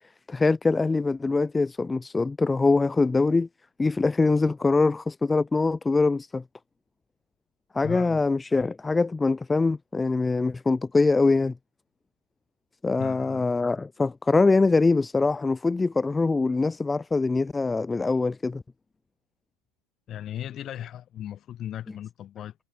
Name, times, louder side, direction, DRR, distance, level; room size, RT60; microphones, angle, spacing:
voice 1, 0.3-3.5 3.8-6.4 7.7-11.5 12.8-18.6, left 3 dB, 10° left, 0.4 m, -23 dB
voice 2, 7.8-8.2 13.0-13.5 20.1-22.6, left 11 dB, 30° left, 4.0 m, -37 dB
figure-of-eight pair, 90°, 0 cm